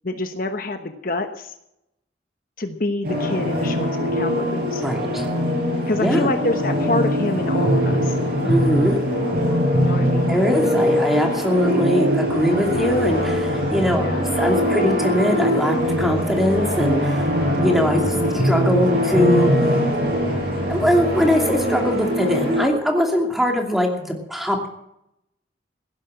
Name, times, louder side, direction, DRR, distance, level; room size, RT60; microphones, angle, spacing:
voice 1, 0.0-1.6 2.6-4.8 5.9-8.2 9.8-10.3 14.0-14.2 18.2-18.4, left 2 dB, 45° left, 6 dB, 1.1 m, -26 dB
sound 1, 3.0-22.6, equal, 50° right, 6.3 m, -22 dB
voice 2, 4.8-5.3 6.0-6.3 8.4-9.0 10.3-17.3 17.6-19.5 20.7-24.7, equal, ahead, 2 dB, 2.6 m, -21 dB
16.5 x 11.0 x 7.7 m, 0.81 s
head